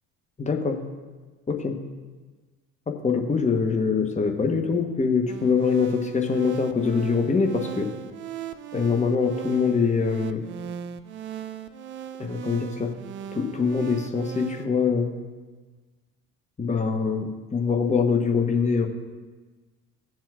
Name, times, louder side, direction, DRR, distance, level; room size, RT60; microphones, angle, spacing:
voice 1, 0.4-0.8 1.5-1.8 2.9-7.9 8.7-10.4 12.2-12.9 13.3-15.2 16.6-18.9, left 5 dB, 15° left, 3 dB, 1.1 m, -24 dB
sound 1, 5.3-14.7, right 9 dB, 25° right, 0.4 m, -38 dB
16.5 x 7.5 x 2.4 m, 1.3 s
figure-of-eight pair, 65°, 47 cm